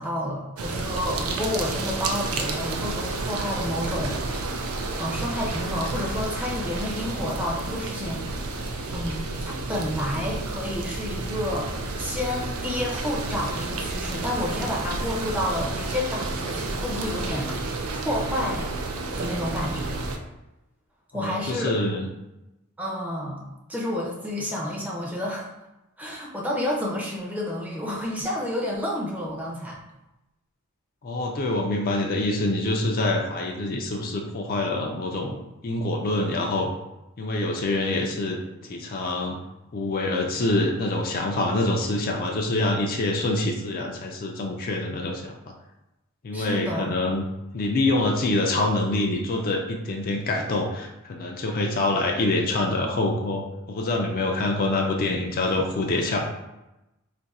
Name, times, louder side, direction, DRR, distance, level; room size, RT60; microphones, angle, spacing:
voice 1, 0.0-4.7 5.0-18.7 19.2-20.0 21.1-21.7 22.8-25.5 26.0-29.8 46.3-47.0, left 1 dB, 5° right, -3 dB, 0.6 m, -30 dB
sound 1, 0.6-20.2, right 3 dB, 90° right, 0.4 m, -31 dB
voice 2, 21.1-22.1 31.0-35.4 35.6-36.7 37.2-38.4 38.7-39.4 39.7-45.5 46.2-47.2 47.5-56.2, left 2 dB, 45° left, 1 dB, 0.4 m, -25 dB
2.6 x 2.5 x 4.0 m, 0.95 s
head